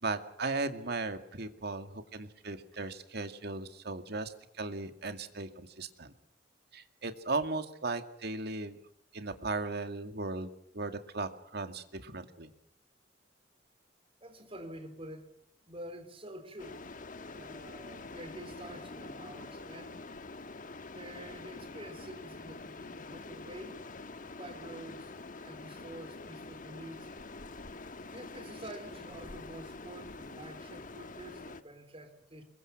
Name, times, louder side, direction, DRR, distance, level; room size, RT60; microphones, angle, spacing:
voice 1, 0.0-6.1 6.7-8.8 9.1-12.5, right 3 dB, 60° right, 2.2 m, -37 dB
voice 2, 14.2-15.3 15.6-17.0 17.3-20.1 20.9-23.8 24.4-25.1 25.4-27.1 28.1-32.4, right 1 dB, 30° right, 4.1 m, -48 dB
sound 1, 16.6-31.6, left 3 dB, 45° left, 1.3 m, -46 dB
26.0 x 22.5 x 6.1 m
head